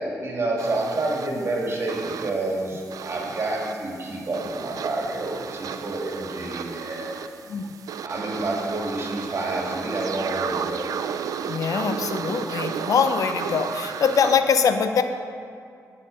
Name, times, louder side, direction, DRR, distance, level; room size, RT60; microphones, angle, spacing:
voice 1, 0.0-7.2 8.0-10.9, right 2 dB, 45° right, -1 dB, 2.0 m, -28 dB
sound 1, 0.6-14.4, right 7 dB, 75° right, 0.4 m, -34 dB
voice 2, 11.5-15.0, left 6 dB, 70° left, 8 dB, 0.6 m, -22 dB
10.0 x 5.8 x 5.2 m, 2.3 s
cardioid pair, 70°, 6 cm